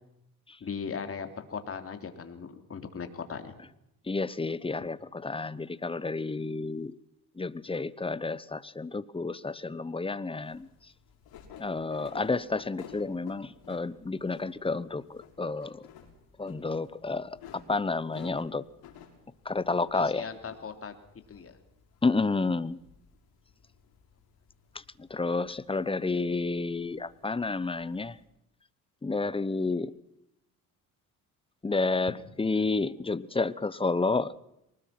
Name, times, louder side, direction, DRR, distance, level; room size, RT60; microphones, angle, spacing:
voice 1, 0.6-3.5 4.8-4.9 19.9-20.9 21.3-21.6, left 6 dB, 40° left, 7 dB, 3.4 m, -38 dB
voice 2, 4.1-7.0 7.4-10.7 11.6-15.8 16.4-17.4 17.7-18.6 19.4-20.3 22.0-22.8 25.1-28.2 29.0-29.9 31.6-34.4, left 3 dB, 15° left, 18 dB, 1.0 m, -30 dB
sound 1, 10.4-28.2, left 7 dB, 75° left, 6.4 m, -54 dB
24.0 x 20.0 x 6.0 m, 0.83 s
cardioid pair, 95°, 36 cm